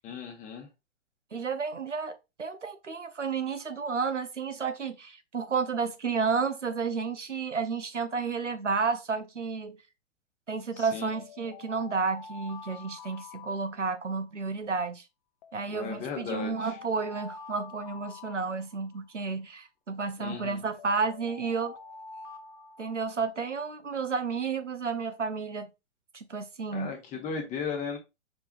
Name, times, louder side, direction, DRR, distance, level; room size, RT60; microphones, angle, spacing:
voice 1, 0.0-0.7 10.8-11.1 15.7-16.8 20.2-20.6 26.7-28.0, left 6 dB, 20° left, 1.1 m, -36 dB
voice 2, 1.3-2.1 2.4-9.8 10.5-15.0 15.5-21.8 22.8-25.7 26.1-26.9, right 5 dB, 90° right, 0.7 m, -31 dB
sound 1, 11.1-14.3 15.4-19.2 20.3-23.5, left 5 dB, 40° left, 0.6 m, -48 dB
4.9 x 3.4 x 2.4 m
figure-of-eight pair, 105°, 36 cm